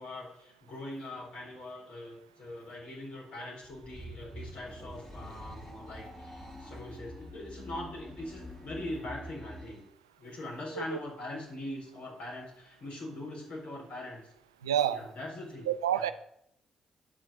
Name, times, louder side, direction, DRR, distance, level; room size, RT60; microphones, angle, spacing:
voice 1, 0.0-9.8 10.2-14.3 14.9-15.7 15.9-16.1, left 1 dB, 65° left, 4.3 m, -42 dB
sound 1, 3.6-9.9, left 1 dB, 20° left, 3.1 m, -46 dB
voice 2, 14.6-15.0 15.7-16.1, right 10 dB, 85° right, 0.4 m, -28 dB
8.9 x 4.8 x 7.6 m
hypercardioid pair, 40°, 2 cm